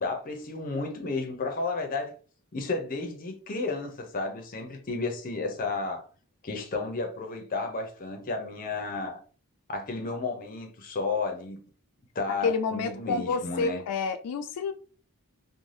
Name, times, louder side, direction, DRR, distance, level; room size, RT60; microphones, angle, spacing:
voice 1, 0.0-2.1 2.5-6.1 6.4-9.2 9.7-11.6 12.1-13.8, left 3 dB, 40° left, 0.6 m, -32 dB
voice 2, 12.4-14.7, left 4 dB, 90° left, 0.3 m, -29 dB
2.6 x 2.1 x 3.2 m
head